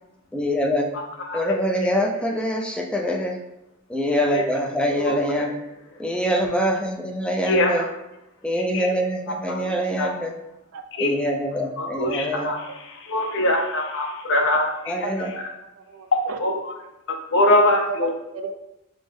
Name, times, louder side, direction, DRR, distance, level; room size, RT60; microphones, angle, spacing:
voice 1, 0.3-0.9 1.3-3.4 3.9-5.5 6.0-7.8 8.4-10.3 11.0-12.5 14.9-15.3, equal, 5° left, 1 dB, 0.4 m, -24 dB
voice 2, 7.5-7.8 8.7-8.9 9.6-9.7 10.0-10.1 11.0-11.1 11.8-15.5 16.4-16.7 17.1-18.1, left 1 dB, 60° left, 1 dB, 0.7 m, -23 dB
voice 3, 12.0-12.5 14.6-14.7 15.2-15.4 15.8-16.4 17.5-18.5, right 3 dB, 70° right, 6 dB, 0.4 m, -33 dB
5.1 x 2.0 x 3.5 m, 0.91 s
head